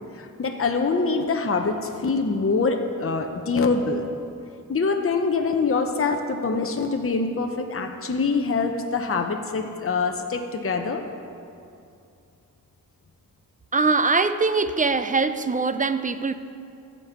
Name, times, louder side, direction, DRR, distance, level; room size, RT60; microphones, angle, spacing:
voice 1, 0.1-4.0 4.7-11.0, left 4 dB, 40° left, 4 dB, 0.9 m, -24 dB
voice 2, 13.7-16.3, right 4 dB, 25° right, 11 dB, 0.5 m, -22 dB
15.5 x 5.4 x 7.4 m, 2.5 s
wide cardioid pair, 90°, 35 cm